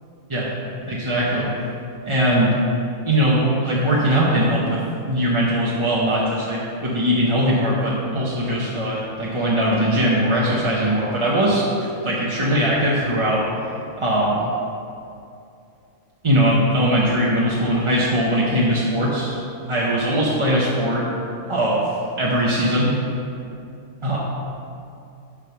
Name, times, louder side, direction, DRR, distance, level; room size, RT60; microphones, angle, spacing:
voice 1, 0.8-1.5 2.1-2.5 3.0-4.8 5.0-13.4 14.0-14.5 16.2-21.0 21.5-21.9 22.2-22.9 24.0-24.2, equal, 30° right, -6 dB, 0.6 m, -20 dB
9.7 x 3.5 x 5.7 m, 2.6 s
omnidirectional pair, 1.6 m